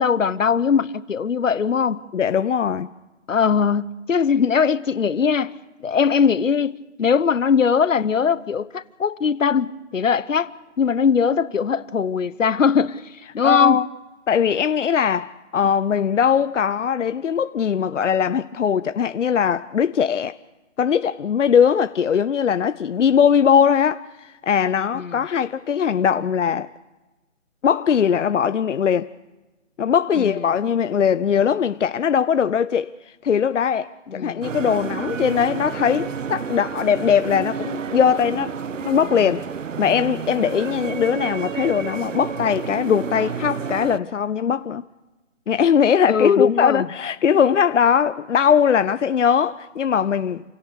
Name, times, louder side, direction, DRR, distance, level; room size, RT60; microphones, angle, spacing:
voice 1, 0.0-2.0 3.3-5.5 5.8-13.8 24.9-25.2 30.2-30.4 34.1-34.4 46.1-46.9, left 6 dB, 90° left, 1.0 m, -20 dB
voice 2, 2.1-2.9 13.4-13.9 14.3-20.4 20.8-26.7 27.6-29.1 29.8-32.9 33.2-39.4 39.8-44.8 45.5-50.4, left 7 dB, 75° left, 0.7 m, -20 dB
sound 1, 34.4-44.0, right 7 dB, 80° right, 0.8 m, -30 dB
28.0 x 17.5 x 6.8 m
hypercardioid pair, 170°, 37 cm